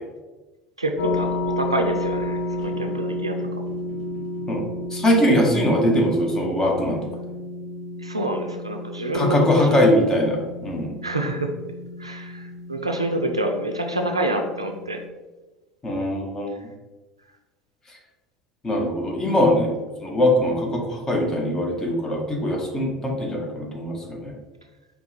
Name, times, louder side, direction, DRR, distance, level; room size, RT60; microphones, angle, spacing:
voice 1, 0.8-1.3 1.6-3.6 8.0-9.8 11.0-11.5 12.0-15.0, right 1 dB, 85° right, 4 dB, 0.4 m, -27 dB
sound 1, 1.0-15.1, left 1 dB, 65° left, 0.6 m, -32 dB
voice 2, 4.9-7.0 9.1-10.9 15.8-16.5 18.6-19.7 20.0-24.3, left 1 dB, 20° left, 0 dB, 1.1 m, -21 dB
5.0 x 3.1 x 3.2 m, 1.2 s
figure-of-eight pair, 65°, 3 cm